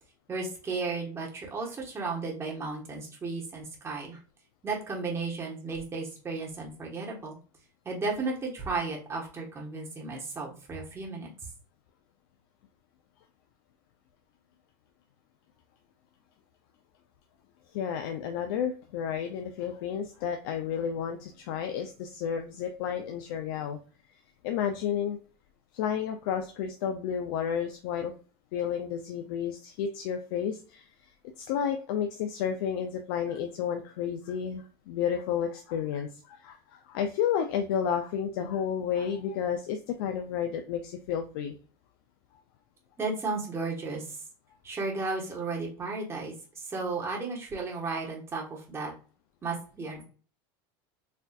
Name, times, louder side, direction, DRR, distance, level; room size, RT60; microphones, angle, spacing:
voice 1, 0.3-4.2 4.6-7.3 7.8-11.3 43.0-44.2 44.6-48.9 49.4-50.0, right 3 dB, 20° right, -1 dB, 1.2 m, -34 dB
voice 2, 17.7-23.8 24.4-25.2 25.7-28.1 28.5-30.8 31.4-41.6, left 8 dB, 80° left, 5 dB, 0.5 m, -31 dB
4.2 x 2.6 x 2.4 m, 0.39 s
supercardioid pair, 130°, 12 cm